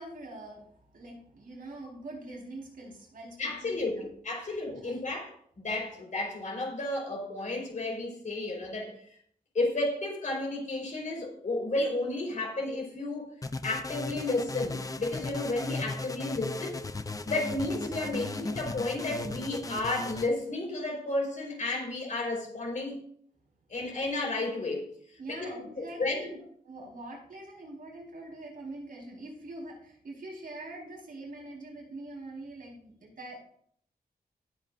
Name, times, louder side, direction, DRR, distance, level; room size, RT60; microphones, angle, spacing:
voice 1, 0.0-4.1 4.5-5.0 25.2-26.3 26.6-33.4, right 2 dB, 65° right, -2 dB, 4.4 m, -44 dB
voice 2, 3.4-9.1 9.5-13.3 13.6-16.8 17.2-23.0 23.7-24.9 25.3-25.5 26.0-26.3, left 2 dB, 55° left, -1 dB, 4.4 m, -32 dB
sound 1, 13.4-20.3, left 3 dB, 20° left, 0.6 m, -37 dB
19.0 x 7.8 x 2.6 m, 0.64 s
wide cardioid pair, 140°, 16 cm